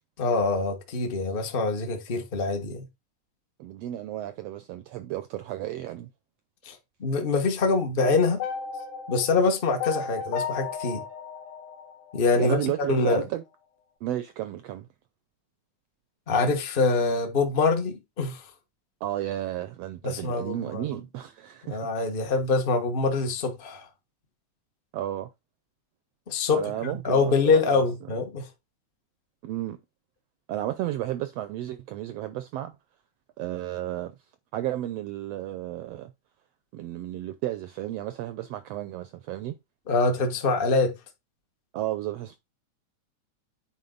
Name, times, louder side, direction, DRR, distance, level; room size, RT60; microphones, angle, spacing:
voice 1, 0.2-2.8 6.6-6.7 7.0-8.4 9.1-11.0 12.1-12.6 12.9-13.2 16.3-18.4 20.0-20.8 21.7-23.8 26.3-28.5 39.9-40.9, left 4 dB, 70° left, 0.5 m, -24 dB
voice 2, 3.6-6.1 12.4-13.4 14.0-14.9 19.0-21.8 24.9-25.3 26.5-27.8 29.4-29.8 30.5-32.7 33.4-34.1 34.5-36.1 36.7-39.6 41.7-42.4, right 13 dB, 80° right, 1.4 m, -33 dB
sound 1, 8.4-12.6, left 6 dB, 90° left, 2.7 m, -35 dB
9.4 x 4.4 x 3.9 m
omnidirectional pair, 3.5 m